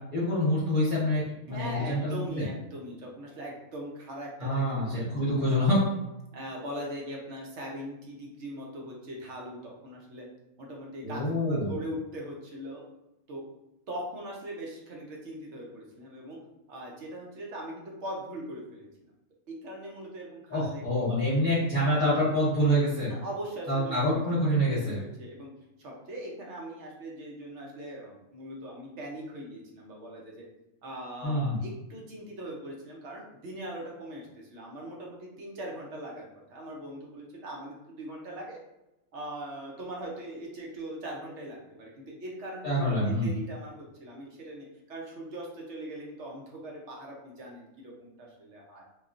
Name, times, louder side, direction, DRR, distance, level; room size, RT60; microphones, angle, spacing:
voice 1, 0.1-2.4 4.4-5.8 11.0-11.7 20.5-23.1 23.7-25.0 31.2-31.6 42.6-43.3, equal, 40° left, -10 dB, 0.9 m, -26 dB
voice 2, 1.5-5.4 6.3-10.3 10.6-12.8 13.3-13.4 13.9-16.4 16.7-18.9 19.5-21.1 23.1-24.2 24.8-25.5 25.8-30.5 30.8-36.2 36.5-38.6 39.1-48.8, right 1 dB, 60° right, -2 dB, 0.9 m, -40 dB
3.0 x 2.3 x 2.4 m, 0.94 s
omnidirectional pair, 1.5 m